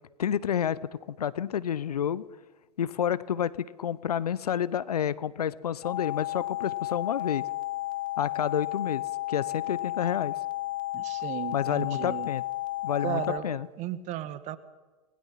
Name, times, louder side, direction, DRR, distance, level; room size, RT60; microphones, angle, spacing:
voice 1, 0.2-0.8 1.2-2.2 2.8-7.4 8.2-10.3 11.5-12.4 12.8-13.7, left 9 dB, 70° left, 18 dB, 1.0 m, -29 dB
sound 1, 5.8-13.4, left 16 dB, 40° left, 2.6 m, -33 dB
voice 2, 10.9-12.3 13.0-14.6, right 12 dB, 35° right, 13 dB, 1.8 m, -35 dB
28.5 x 20.0 x 5.9 m, 1.2 s
figure-of-eight pair, 105°, 20 cm